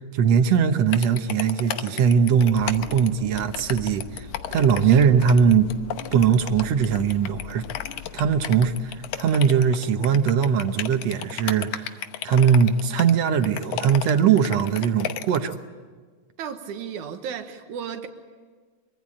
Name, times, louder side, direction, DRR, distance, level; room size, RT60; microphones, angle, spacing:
voice 1, 0.0-5.7 6.1-7.7 8.1-15.6, right 7 dB, 65° right, 8 dB, 2.1 m, -20 dB
sound 1, 0.9-15.6, left 10 dB, 85° left, 2.4 m, -33 dB
sound 2, 2.5-9.9, left 9 dB, 60° left, 1.6 m, -42 dB
voice 2, 4.8-5.1 16.4-18.1, right 7 dB, 85° right, 7 dB, 2.7 m, -34 dB
24.5 x 24.0 x 8.6 m, 1.5 s
omnidirectional pair, 3.3 m